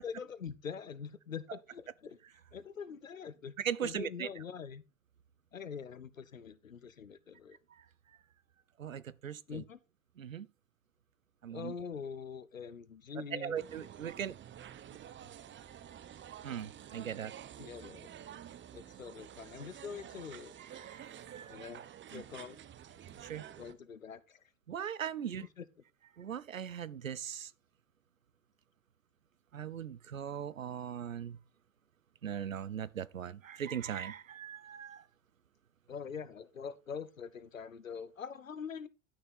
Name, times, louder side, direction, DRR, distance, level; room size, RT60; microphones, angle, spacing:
voice 1, 0.0-2.2 2.5-3.6 3.8-4.8 5.5-7.6 9.5-9.8 11.5-13.6 17.6-18.1 18.7-20.5 21.5-21.8 22.1-22.6 23.6-24.4 25.6-25.7 35.9-38.9, left 6 dB, 90° left, 0.8 m, -44 dB
voice 2, 3.6-4.3 8.8-9.6 10.2-10.5 11.4-11.7 13.3-14.4 16.4-17.3 20.7-21.5 22.1-22.2 23.2-23.4 24.7-25.4 26.2-27.5 29.5-31.4 32.2-35.0, right 8 dB, 90° right, 0.6 m, -39 dB
sound 1, 13.6-23.7, right 10 dB, 30° right, 0.9 m, -50 dB
11.0 x 6.5 x 4.1 m
figure-of-eight pair, 70°, 39 cm